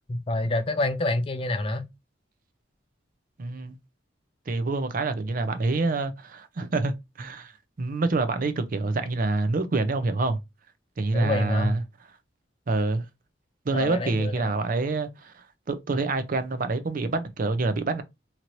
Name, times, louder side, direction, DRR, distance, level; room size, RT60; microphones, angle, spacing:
voice 1, 0.1-1.9 11.1-11.8 13.7-14.5, left 2 dB, 30° left, 0.4 m, -27 dB
voice 2, 3.4-3.8 4.5-7.5 7.8-10.4 11.0-11.8 12.7-13.0 13.7-18.0, right 3 dB, 45° right, 0.5 m, -27 dB
2.9 x 2.6 x 2.9 m
head